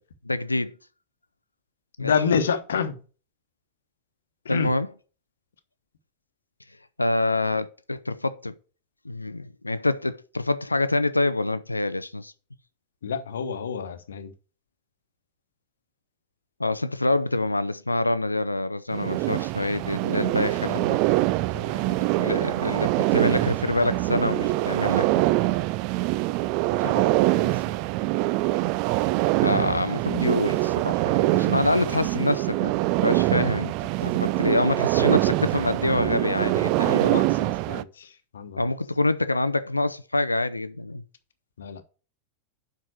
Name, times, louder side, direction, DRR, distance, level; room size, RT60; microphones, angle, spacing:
voice 1, 0.3-0.7 2.0-2.1 4.5-4.9 7.0-8.5 9.0-12.3 16.6-21.0 21.6-25.2 29.4-32.7 33.0-33.7 34.0-37.1 38.6-41.0, left 2 dB, 85° left, 0.5 m, -26 dB
voice 2, 2.0-2.9 4.4-4.7 13.0-14.3 26.8-27.8 36.8-38.1 38.3-38.6 41.6-41.8, left 6 dB, 65° left, 1.1 m, -28 dB
sound 1, 18.9-37.8, right 18 dB, 45° right, 0.4 m, -24 dB
7.6 x 5.8 x 6.3 m
figure-of-eight pair, 90°, 0 cm